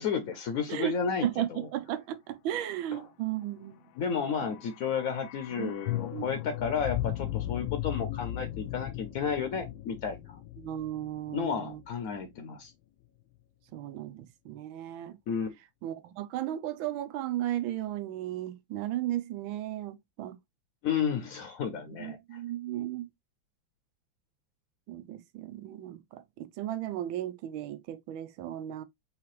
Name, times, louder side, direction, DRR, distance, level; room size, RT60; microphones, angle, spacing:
voice 1, 0.0-1.7 2.9-3.0 4.0-10.4 11.3-12.7 15.3-15.5 20.8-22.4, left 6 dB, 60° left, 0.9 m, -32 dB
voice 2, 1.2-3.9 5.6-5.7 6.1-6.3 6.6-6.7 10.6-11.8 13.7-15.2 15.8-20.4 21.9-23.1 24.9-28.8, right 12 dB, 80° right, 1.4 m, -35 dB
sound 1, 4.2-12.3 12.6-12.7, left 14 dB, 80° left, 1.3 m, -37 dB
4.7 x 3.2 x 3.0 m
omnidirectional pair, 2.2 m